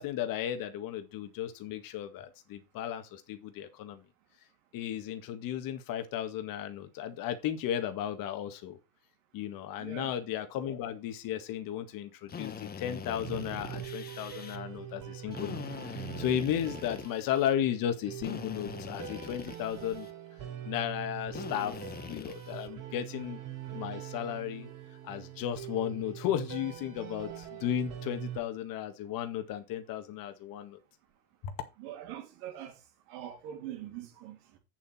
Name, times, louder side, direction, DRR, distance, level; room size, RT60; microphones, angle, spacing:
voice 1, 0.0-4.0 4.7-8.8 9.3-20.1 20.6-21.7 22.1-23.4 23.7-24.7 25.0-30.8 31.4-31.6, left 10 dB, 45° left, 1.9 m, -34 dB
voice 2, 9.8-10.2 31.8-32.7 33.1-34.6, right 11 dB, 60° right, 3.2 m, -43 dB
Drill, 12.3-14.6 15.3-17.5 18.2-20.1 21.3-22.7, left 6 dB, 20° left, 1.2 m, -43 dB
sound 1, 13.2-28.4, right 11 dB, 40° right, 3.9 m, -43 dB
8.3 x 7.6 x 4.3 m
hypercardioid pair, 100°, 45 cm